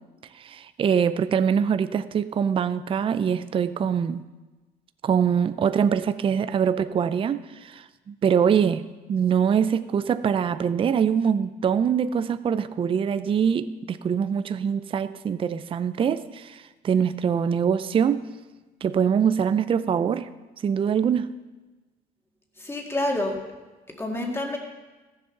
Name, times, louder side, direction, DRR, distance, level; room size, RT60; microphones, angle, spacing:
voice 1, 0.4-4.2 5.0-16.6 16.8-18.3 18.8-20.3 20.6-21.3, right 7 dB, 30° right, 12 dB, 0.5 m, -23 dB
voice 2, 22.6-23.4 23.9-24.6, left 1 dB, 15° left, 1 dB, 2.1 m, -28 dB
15.0 x 7.4 x 5.8 m, 1.2 s
cardioid pair, 110°, 17 cm